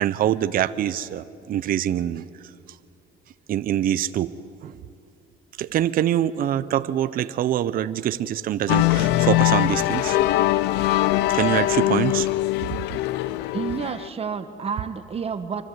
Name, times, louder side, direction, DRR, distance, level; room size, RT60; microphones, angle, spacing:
voice 1, 0.0-2.2 3.5-4.3 4.6-4.8 5.6-10.2 11.3-12.3, right 11 dB, 60° right, 13 dB, 0.8 m, -24 dB
sound 1, 8.7-14.1, left 15 dB, 90° left, 0.7 m, -22 dB
voice 2, 13.5-15.6, right 6 dB, 35° right, 9 dB, 1.3 m, -30 dB
26.5 x 24.0 x 8.0 m, 2.6 s
cardioid pair, 110°, 17 cm